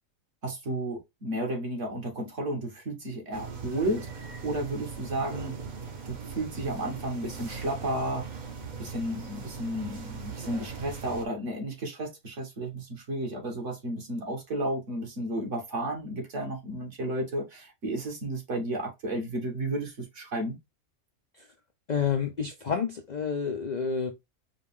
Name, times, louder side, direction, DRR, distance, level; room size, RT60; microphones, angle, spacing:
voice 1, 0.4-8.3 8.8-20.6, right 1 dB, 60° right, 1.8 m, -33 dB
sound 1, 3.3-11.3, right 5 dB, 40° right, 0.8 m, -40 dB
voice 2, 21.9-24.1, left 6 dB, 55° left, 0.4 m, -29 dB
4.9 x 2.3 x 3.5 m
omnidirectional pair, 1.4 m